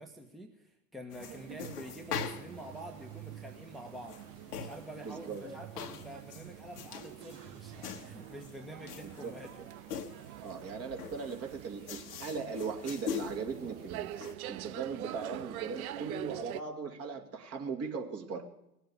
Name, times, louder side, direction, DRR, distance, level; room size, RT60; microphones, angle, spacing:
voice 1, 0.0-4.2 4.5-9.7, equal, ahead, 2 dB, 1.4 m, -47 dB
sound 1, 1.1-14.3, left 7 dB, 75° left, 1.6 m, -44 dB
sound 2, 1.2-16.6, right 13 dB, 65° right, 0.8 m, -46 dB
Car / Engine starting / Idling, 2.4-8.2, right 8 dB, 80° right, 2.9 m, -53 dB
voice 2, 5.0-5.6 9.2-9.3 10.4-14.1 14.5-18.5, right 5 dB, 30° right, 3 dB, 2.4 m, -38 dB
19.0 x 8.0 x 8.5 m, 0.87 s
hypercardioid pair, 95°, 47 cm